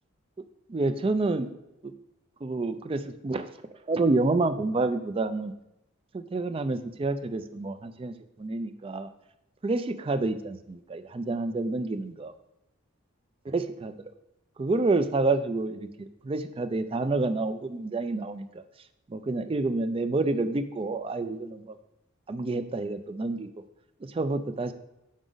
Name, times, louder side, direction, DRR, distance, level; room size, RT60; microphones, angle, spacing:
voice 1, 0.7-1.5 1.8-1.9 2.4-3.5 3.9-5.5 6.1-9.1 9.6-12.3 13.5-13.9 14.6-18.6 19.1-21.8 22.3-23.5 24.0-24.7, right 3 dB, 25° right, 9 dB, 0.3 m, -28 dB
6.3 x 4.9 x 3.9 m, 0.89 s
head